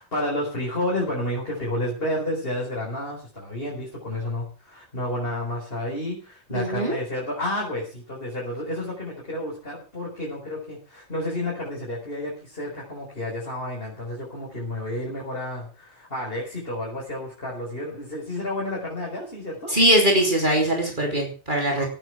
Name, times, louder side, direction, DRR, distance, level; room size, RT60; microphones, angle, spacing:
voice 1, 0.0-19.7 21.7-21.9, left 1 dB, 55° left, -3 dB, 4.9 m, -30 dB
voice 2, 6.5-7.0 19.7-21.9, right 1 dB, 45° right, 0 dB, 3.3 m, -21 dB
17.5 x 8.9 x 6.1 m, 0.37 s
omnidirectional pair, 1.2 m